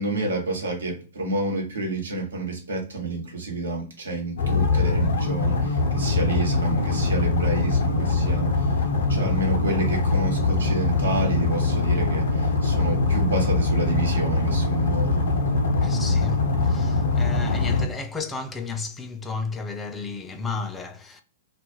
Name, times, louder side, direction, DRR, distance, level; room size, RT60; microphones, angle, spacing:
voice 1, 0.0-8.7 9.1-15.2, right 2 dB, 75° right, 0.9 m, -29 dB
sound 1, 4.4-17.8, left 3 dB, 65° left, 0.5 m, -23 dB
voice 2, 15.8-21.2, left 4 dB, 15° left, 0.4 m, -33 dB
2.2 x 2.1 x 3.0 m
figure-of-eight pair, 105°, 0 cm